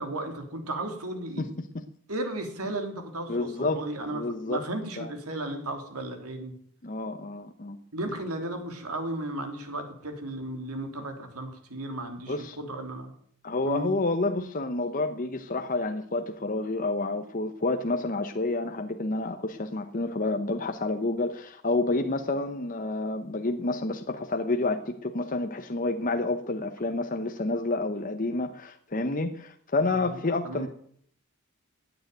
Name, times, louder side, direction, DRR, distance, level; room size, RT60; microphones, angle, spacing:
voice 1, 0.0-1.5 2.1-6.5 7.9-13.1 13.6-13.9 29.9-30.7, right 1 dB, 80° right, 5 dB, 3.4 m, -35 dB
voice 2, 3.3-3.8 4.1-4.6 5.0-5.1 6.8-7.8 12.3-12.6 13.4-30.7, left 2 dB, 35° left, 6 dB, 0.9 m, -29 dB
16.5 x 9.2 x 9.2 m, 0.64 s
head